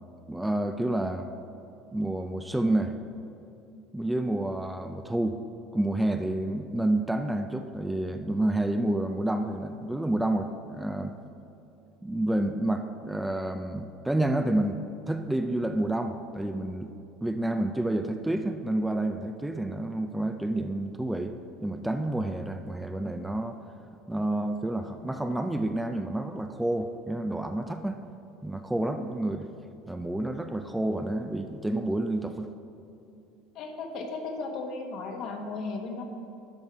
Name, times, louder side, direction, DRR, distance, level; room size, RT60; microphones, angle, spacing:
voice 1, 0.3-1.3 1.9-2.9 3.9-5.4 5.7-11.2 12.0-16.9 17.2-21.3 21.6-23.6 24.1-28.0 28.4-29.5 29.9-32.5, right 1 dB, 5° right, 6 dB, 0.5 m, -29 dB
voice 2, 33.5-36.0, left 3 dB, 55° left, 3 dB, 1.4 m, -35 dB
12.0 x 5.4 x 4.7 m, 2.8 s
supercardioid pair, 110°, 0 cm